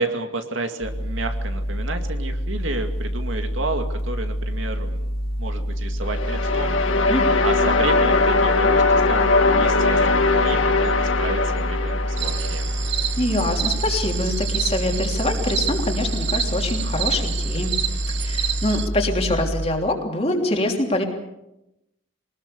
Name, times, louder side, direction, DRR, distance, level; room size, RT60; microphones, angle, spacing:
voice 1, 0.0-5.1 5.4-6.7 7.4-12.7, right 2 dB, 75° right, 6 dB, 2.3 m, -31 dB
sound 1, 0.8-19.7, equal, 45° left, 2.9 m, -27 dB
sound 2, 6.0-13.1, left 3 dB, 85° left, 2.6 m, -20 dB
voice 2, 7.1-7.4 13.2-21.0, left 1 dB, 30° left, 2 dB, 3.3 m, -25 dB
sound 3, 12.2-18.9, right 10 dB, 60° right, 1.2 m, -29 dB
24.0 x 20.0 x 7.0 m, 0.90 s
head